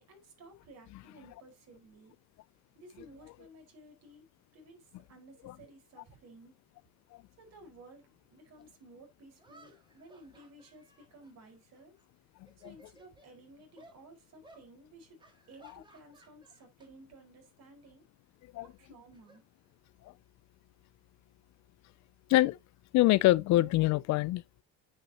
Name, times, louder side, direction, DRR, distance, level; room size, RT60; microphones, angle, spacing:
voice 1, 0.0-2.2 2.7-6.5 7.4-12.0 12.6-18.0 18.6-19.4, right 2 dB, 55° right, 4.7 m, -55 dB
sound 1, 8.6-8.7 9.4-12.0 12.4-13.3 13.8-14.0 14.4-14.7 15.2-16.9 17.2-17.5 18.7-20.1, right 2 dB, 15° right, 2.1 m, -61 dB
voice 2, 22.9-24.4, left 17 dB, 65° left, 0.4 m, -24 dB
9.4 x 5.7 x 2.9 m
cardioid pair, 135°, 31 cm